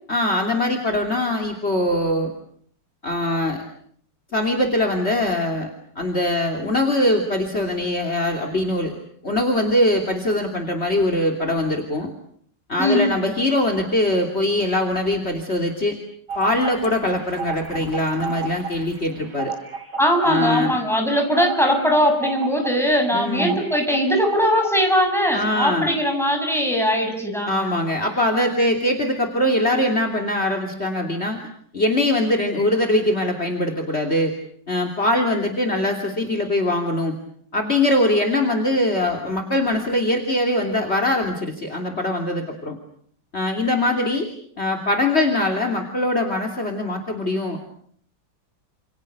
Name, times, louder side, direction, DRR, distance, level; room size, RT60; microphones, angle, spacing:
voice 1, 0.1-2.3 3.0-3.6 4.3-12.1 12.7-16.0 16.3-19.5 20.3-20.8 23.1-23.6 25.3-26.0 27.5-31.4 31.7-34.3 34.7-37.1 37.5-42.8 43.3-44.3 44.6-47.6, left 1 dB, 35° left, 5 dB, 3.3 m, -22 dB
sound 1, 16.3-25.0 25.3-25.4, right 5 dB, 85° right, 3.9 m, -32 dB
voice 2, 20.0-27.7, equal, ahead, 3 dB, 7.3 m, -20 dB
29.5 x 28.5 x 6.8 m, 0.63 s
omnidirectional pair, 1.8 m